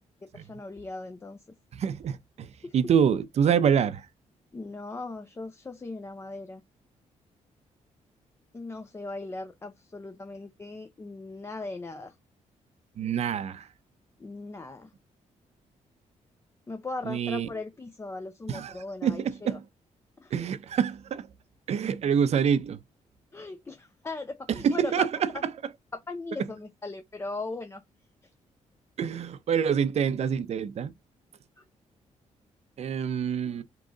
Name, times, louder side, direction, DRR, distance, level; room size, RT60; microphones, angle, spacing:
voice 1, 0.0-1.4 2.6-2.7 4.5-6.6 8.5-12.2 14.2-14.9 16.7-19.6 20.2-20.3 23.3-25.1 25.3-25.4 25.9-27.8 31.6-31.7 33.4-33.6, left 3 dB, 20° left, 0.5 m, -38 dB
voice 2, 1.7-4.1 13.0-13.7 17.1-17.5 18.5-18.7 19.0-19.6 20.3-21.3 21.7-22.8 24.5-25.1 29.0-30.9 32.8-33.6, right 7 dB, 55° right, 0.6 m, -26 dB
3.7 x 3.1 x 3.7 m
cardioid pair, 135°, 13 cm